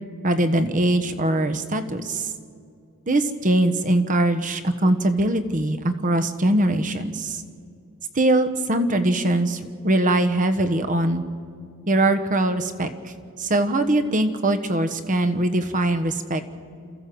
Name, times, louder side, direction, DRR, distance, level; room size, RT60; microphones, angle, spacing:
voice 1, 0.2-2.3 3.1-7.4 8.1-11.2 11.9-13.1 13.4-16.4, right 1 dB, 40° right, 9 dB, 1.2 m, -22 dB
28.0 x 14.5 x 7.8 m, 2.4 s
head